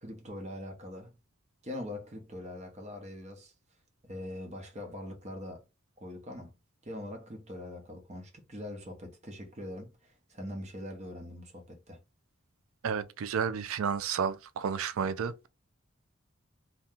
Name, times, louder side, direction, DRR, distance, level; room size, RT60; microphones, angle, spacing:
voice 1, 0.0-1.1 1.6-3.5 4.0-5.7 6.0-6.5 6.8-12.0, left 1 dB, 35° right, 0.9 m, -42 dB
voice 2, 12.8-15.5, right 6 dB, 80° right, 0.4 m, -31 dB
2.7 x 2.2 x 3.5 m
head